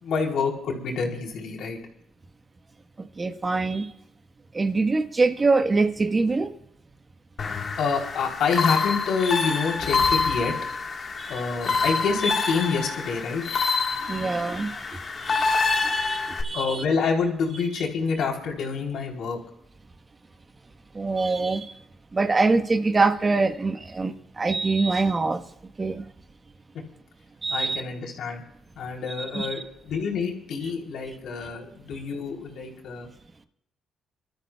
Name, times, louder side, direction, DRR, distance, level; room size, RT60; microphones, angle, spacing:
voice 1, 0.0-1.8 7.8-10.5 11.3-13.4 16.5-19.4 27.5-28.4 28.8-29.6 29.8-33.1, left 5 dB, 75° left, 3.6 m, -27 dB
voice 2, 3.0-3.9 4.5-6.5 11.2-11.4 14.0-16.9 17.7-17.8 20.9-21.7 22.1-25.4 25.8-26.0 27.4-27.8 29.1-29.6, right 3 dB, 30° right, 1.3 m, -25 dB
sound 1, 7.4-16.4, left 4 dB, 50° left, 1.6 m, -26 dB
27.5 x 13.0 x 2.4 m
cardioid pair, 90°, 0 cm